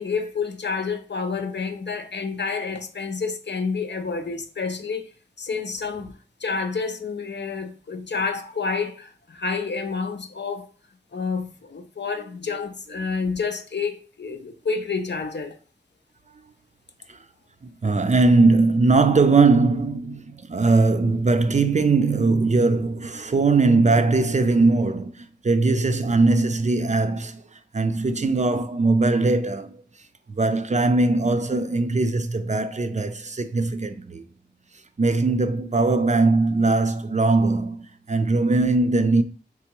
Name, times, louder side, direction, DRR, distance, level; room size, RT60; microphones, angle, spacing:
voice 1, 0.0-5.1 5.4-6.1 6.4-10.7 11.1-15.6, left 4 dB, 75° left, 0.6 m, -29 dB
voice 2, 17.6-29.8 30.3-34.2 35.0-39.2, right 3 dB, 40° right, 0.4 m, -20 dB
3.6 x 3.3 x 3.0 m
wide cardioid pair, 45°, 18 cm